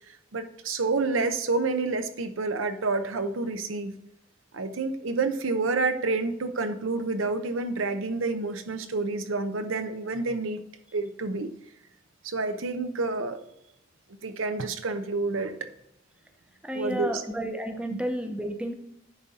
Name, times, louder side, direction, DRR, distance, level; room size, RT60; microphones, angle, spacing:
voice 1, 0.3-3.9 4.5-10.6 10.9-11.5 12.2-13.4 14.2-15.5 16.7-17.2 17.9-18.0, right 3 dB, 80° right, 9 dB, 0.8 m, -28 dB
voice 2, 16.6-18.7, right 1 dB, 5° right, 4 dB, 0.7 m, -31 dB
10.0 x 4.0 x 4.2 m, 0.77 s
head